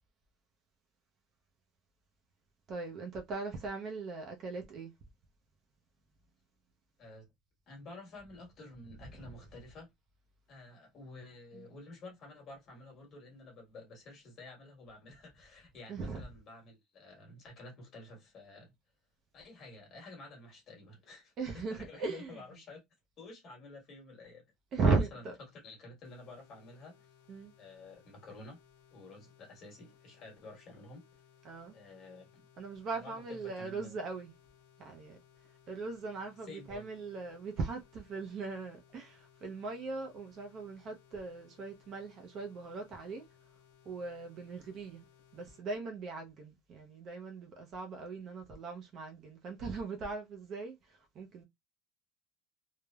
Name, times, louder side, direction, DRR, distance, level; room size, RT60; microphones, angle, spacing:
voice 1, 2.7-4.9 11.5-11.6 15.9-16.2 21.4-22.3 24.7-25.3 27.3-27.5 31.4-31.7 32.6-34.3 34.8-35.2 35.7-43.2 43.9-45.0 45.3-50.8 51.2-51.4, right 4 dB, 30° right, 0.5 m, -38 dB
voice 2, 7.0-7.3 7.7-9.9 10.5-18.7 19.3-22.8 23.2-24.5 24.9-27.1 27.6-28.6 28.9-31.1 31.7-32.5 32.9-34.0 36.4-36.9, left 2 dB, 30° left, 1.3 m, -51 dB
sound 1, 26.0-45.7, left 8 dB, 85° left, 0.8 m, -64 dB
3.1 x 2.0 x 2.2 m
cardioid pair, 170°, 0 cm